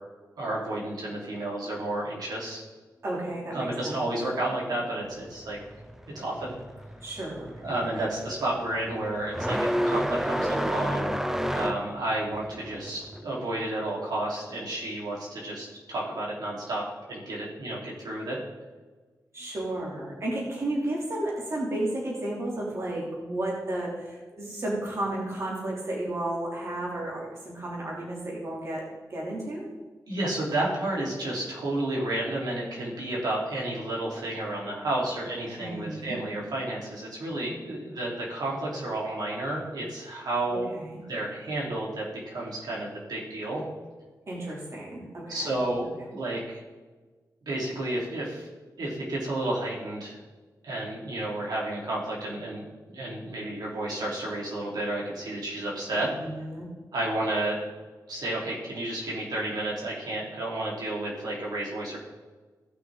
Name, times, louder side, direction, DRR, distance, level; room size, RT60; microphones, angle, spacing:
voice 1, 0.4-2.6 3.5-5.6 6.1-6.5 7.6-16.8 17.1-18.4 30.1-40.7 41.1-43.6 45.3-46.6 47.5-48.5 48.8-50.2 50.6-56.1 56.9-57.6 58.1-62.0, right 1 dB, 85° right, -5 dB, 3.8 m, -31 dB
voice 2, 3.0-4.0 7.0-7.5 7.9-8.1 19.3-29.7 35.6-36.2 40.5-41.0 44.3-45.5 55.9-56.6, right 1 dB, 45° right, -4 dB, 3.1 m, -33 dB
sound 1, 5.0-13.2, equal, 5° right, 0.6 m, -31 dB
17.5 x 6.3 x 3.8 m, 1.3 s
wide cardioid pair, 135°, 7 cm